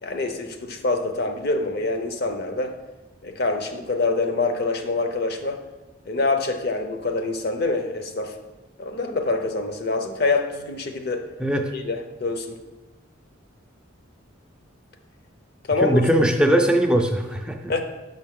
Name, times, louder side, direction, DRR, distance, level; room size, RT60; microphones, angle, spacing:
voice 1, 0.0-2.7 3.2-5.6 6.1-8.3 8.8-11.3 11.7-12.6 15.7-16.2 17.7-17.8, left 3 dB, 50° left, 6 dB, 0.6 m, -25 dB
voice 2, 15.8-17.7, right 1 dB, 5° right, 4 dB, 0.3 m, -20 dB
6.4 x 4.9 x 3.6 m, 1.1 s
head